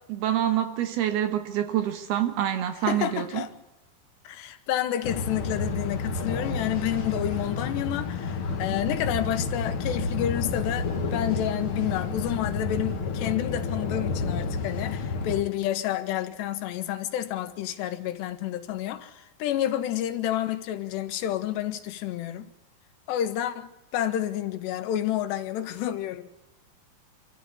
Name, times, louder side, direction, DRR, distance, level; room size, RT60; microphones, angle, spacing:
voice 1, 0.1-3.4, right 11 dB, 75° right, 3.2 m, -26 dB
voice 2, 2.8-3.5 4.2-22.5 23.1-26.3, left 12 dB, 85° left, 3.4 m, -30 dB
sound 1, 5.0-15.4, left 4 dB, 45° left, 1.8 m, -30 dB
25.5 x 14.0 x 9.7 m
omnidirectional pair, 4.8 m